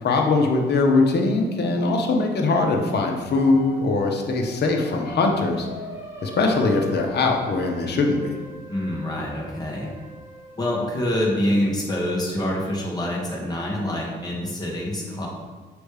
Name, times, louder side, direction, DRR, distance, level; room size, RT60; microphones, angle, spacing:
voice 1, 0.0-5.7 6.2-8.3, left 3 dB, 55° left, 2 dB, 1.0 m, -21 dB
sound 1, 3.1-11.3, equal, 15° right, 1.5 m, -42 dB
voice 2, 8.7-9.9 10.6-15.3, left 1 dB, 20° left, -3 dB, 1.7 m, -26 dB
6.4 x 3.2 x 4.9 m, 1.4 s
cardioid pair, 90°, 20 cm